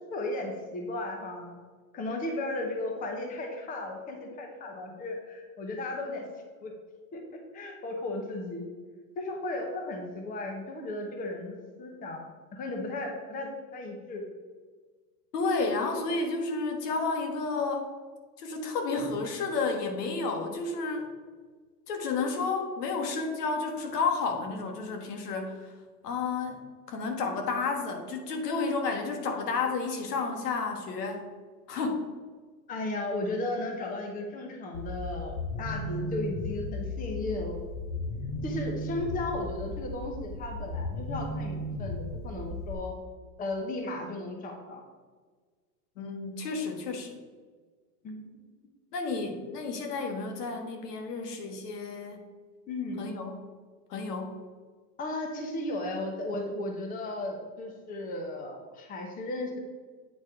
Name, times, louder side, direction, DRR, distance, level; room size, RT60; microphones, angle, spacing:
voice 1, 0.1-1.5 1.9-6.2 6.6-6.7 7.1-7.2 7.5-8.6 9.2-12.2 12.5-14.3 32.7-37.6 38.4-42.9 43.4-44.8 48.0-48.4 52.7-53.1 55.0-59.6, left 2 dB, 20° left, 2 dB, 0.9 m, -35 dB
voice 2, 15.3-17.9 18.4-21.1 21.9-25.7 26.0-31.2 31.7-32.1 46.0-47.2 48.9-52.2 53.0-53.4 53.9-54.4, left 4 dB, 80° left, 4 dB, 1.6 m, -31 dB
sound 1, 34.7-42.7, left 1 dB, 45° left, 1.0 m, -35 dB
8.6 x 4.1 x 4.8 m, 1.5 s
supercardioid pair, 145°, 47 cm